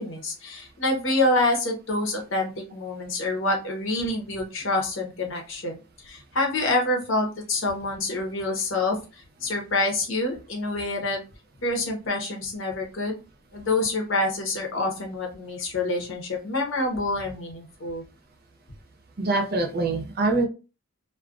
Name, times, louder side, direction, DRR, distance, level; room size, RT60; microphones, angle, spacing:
voice 1, 0.0-5.8 6.0-11.2 11.6-13.2 13.5-18.0, left 2 dB, 65° left, 1 dB, 0.8 m, -27 dB
voice 2, 19.2-20.4, right 2 dB, 45° right, 3 dB, 0.5 m, -24 dB
2.3 x 2.2 x 2.4 m, 0.31 s
head